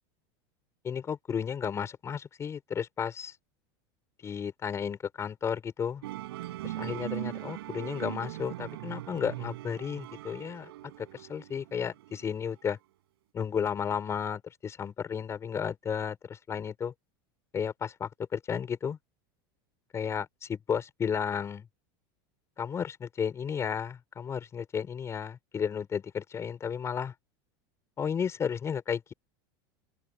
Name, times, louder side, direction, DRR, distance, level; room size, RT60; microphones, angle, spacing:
voice 1, 0.8-3.3 4.2-6.0 6.6-10.7 11.0-12.8 13.3-16.9 17.5-19.0 19.9-21.7 22.6-27.1 28.0-29.1, left 7 dB, 20° left, 7.7 m, -33 dB
Musical instrument, 6.0-12.6, right 16 dB, 90° right, 7.0 m, -40 dB
open air
supercardioid pair, 145°, 12 cm